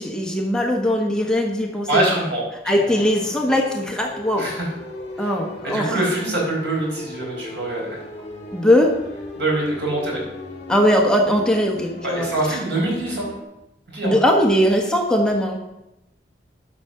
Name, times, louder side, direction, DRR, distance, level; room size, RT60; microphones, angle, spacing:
voice 1, 0.0-2.2 2.6-4.5 5.2-5.9 8.5-8.9 10.7-12.3 14.0-15.6, equal, 5° left, 0 dB, 1.3 m, -20 dB
voice 2, 1.9-2.4 2.9-3.0 4.4-4.7 5.2-5.3 5.6-8.0 9.4-10.2 12.0-13.3 13.9-14.2, right 2 dB, 75° right, -3 dB, 4.9 m, -24 dB
sound 1, 2.8-13.4, left 1 dB, 35° left, 2.0 m, -37 dB
11.5 x 6.0 x 6.8 m, 0.90 s
head